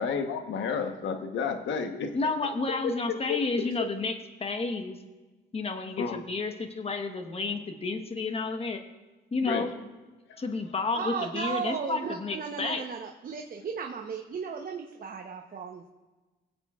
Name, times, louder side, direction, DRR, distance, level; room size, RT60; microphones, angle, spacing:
voice 1, 0.0-2.1 3.3-3.4 6.0-6.2 9.4-9.6, left 6 dB, 70° left, 6 dB, 1.1 m, -30 dB
voice 2, 2.1-5.0 5.5-8.8 9.3-9.7 10.4-12.8, left 3 dB, 30° left, 7 dB, 1.1 m, -31 dB
voice 3, 10.9-15.9, right 6 dB, 45° right, 3 dB, 0.9 m, -35 dB
24.0 x 8.1 x 2.4 m, 1.2 s
cardioid pair, 90°, 20 cm